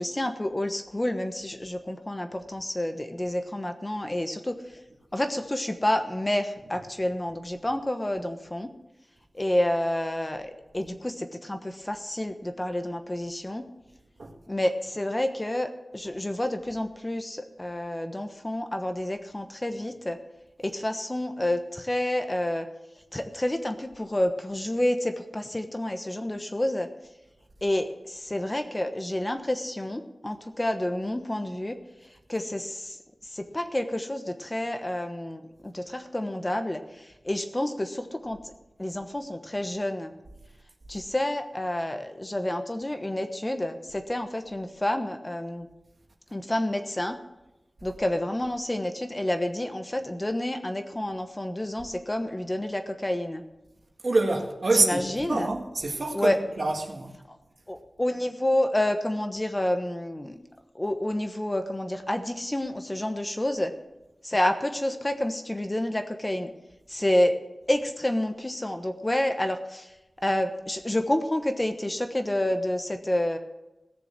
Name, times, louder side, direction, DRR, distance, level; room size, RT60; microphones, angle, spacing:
voice 1, 0.0-4.6 5.1-8.7 9.3-13.7 14.5-20.2 20.6-22.7 23.1-26.9 27.6-31.8 32.3-33.0 33.3-38.5 38.8-40.1 40.9-45.7 46.3-47.2 47.8-53.4 54.7-55.5 56.1-56.4 57.7-60.4 60.7-63.7 64.2-66.5 66.9-67.4 67.7-69.9 70.2-73.4, left 1 dB, 25° left, 1.1 m, -29 dB
voice 2, 54.0-57.1, right 2 dB, 65° right, 1.8 m, -26 dB
16.5 x 7.0 x 6.0 m
wide cardioid pair, 65°, 0 cm